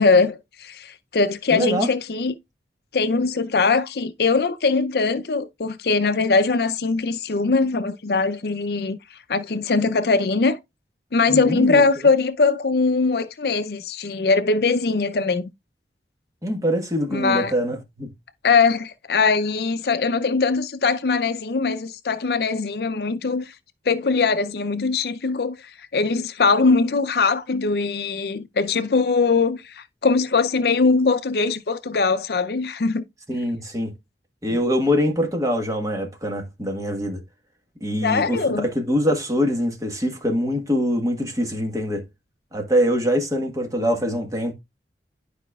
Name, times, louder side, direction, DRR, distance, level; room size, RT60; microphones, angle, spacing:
voice 1, 0.0-2.3 2.9-9.0 9.3-10.6 11.1-15.5 17.1-17.5 18.4-23.5 23.9-25.6 25.9-33.0 38.0-38.7, left 4 dB, 60° left, 0.5 m, -21 dB
voice 2, 1.5-1.9 11.3-11.8 16.4-18.1 33.3-34.0 34.4-37.2 37.8-42.0 42.5-44.5, equal, 20° right, 1.4 m, -23 dB
11.0 x 4.9 x 2.3 m
head